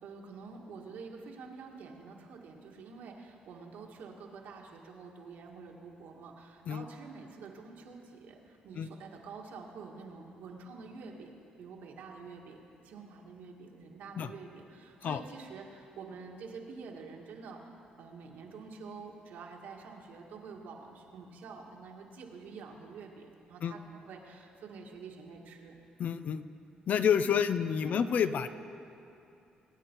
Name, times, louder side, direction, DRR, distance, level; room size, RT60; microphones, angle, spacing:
voice 1, 0.0-12.6 12.8-17.7 18.0-25.7 27.2-28.1, right 4 dB, 80° right, 0 dB, 1.8 m, -48 dB
voice 2, 26.0-26.4 26.9-28.5, left 8 dB, 60° left, 12 dB, 0.5 m, -29 dB
21.5 x 9.4 x 4.6 m, 2.7 s
cardioid pair, 90°, 3 cm